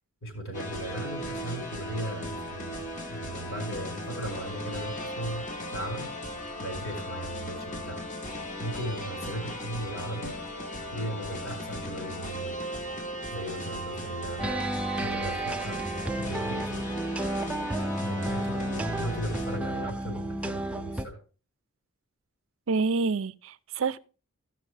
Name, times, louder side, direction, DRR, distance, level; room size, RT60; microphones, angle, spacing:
voice 1, 0.2-2.8 3.1-6.3 6.6-8.1 8.6-10.3 10.9-12.6 13.3-14.5 15.0-15.8 16.2-16.8 18.0-21.2, right 1 dB, 60° left, 4.9 m, -37 dB
sound 1, 0.5-19.6, equal, 35° left, 1.2 m, -37 dB
sound 2, 14.4-21.1, right 1 dB, 5° right, 0.4 m, -32 dB
voice 2, 22.7-24.0, right 4 dB, 60° right, 0.5 m, -27 dB
15.5 x 6.1 x 3.3 m
head